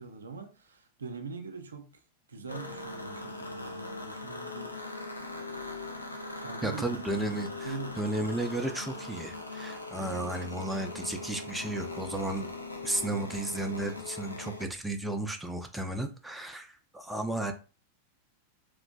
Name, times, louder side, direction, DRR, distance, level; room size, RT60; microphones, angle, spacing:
voice 1, 0.0-2.0 2.3-4.8 6.4-7.0 7.6-8.2, right 4 dB, 70° right, 0.4 m, -42 dB
sound 1, 2.5-14.7, left 2 dB, 80° left, 0.5 m, -40 dB
voice 2, 6.6-12.5 12.8-17.5, right 2 dB, 5° right, 0.4 m, -34 dB
3.1 x 2.5 x 2.2 m
figure-of-eight pair, 90°, 0 cm